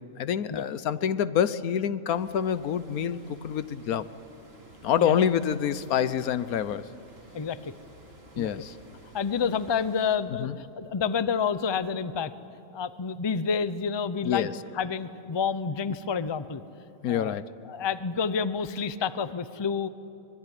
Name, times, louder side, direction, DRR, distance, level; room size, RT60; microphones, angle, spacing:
voice 1, 0.2-4.1 4.8-6.8 8.4-8.7 10.4-10.6 14.2-14.5 17.0-17.4, left 9 dB, 90° left, 14 dB, 1.3 m, -27 dB
sound 1, 2.1-10.2, right 1 dB, 45° right, 3.0 m, -53 dB
voice 2, 7.3-7.7 8.4-8.5 9.1-12.3 12.7-14.5 14.7-16.6 17.1-17.4 17.7-19.9, left 6 dB, 30° left, 13 dB, 0.5 m, -29 dB
24.5 x 22.0 x 10.0 m, 2.7 s
omnidirectional pair, 1.5 m